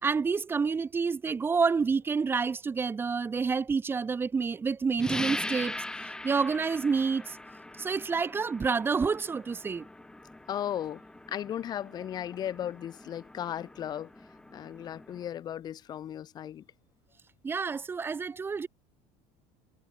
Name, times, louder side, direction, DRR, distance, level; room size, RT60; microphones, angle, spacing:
voice 1, 0.0-5.8 6.2-7.4 7.8-9.9 17.4-18.7, right 5 dB, 15° right, 2.4 m, -28 dB
sound 1, 5.0-15.3, left 2 dB, 5° left, 2.7 m, -41 dB
voice 2, 10.5-11.0 11.3-14.1 14.5-16.6, left 10 dB, 35° left, 1.3 m, -36 dB
cardioid pair, 155°, 12 cm